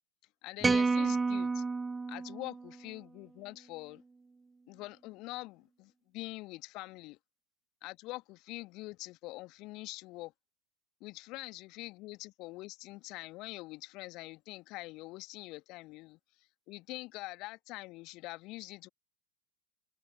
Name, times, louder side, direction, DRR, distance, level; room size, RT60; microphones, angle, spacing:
voice 1, 0.4-1.6 2.1-4.0 4.7-7.2 7.8-10.3 11.0-16.2 16.7-18.9, left 21 dB, 40° left, 1.7 m, -44 dB
sound 1, 0.6-3.0, right 4 dB, 10° right, 0.4 m, -30 dB
figure-of-eight pair, 90°, 0 cm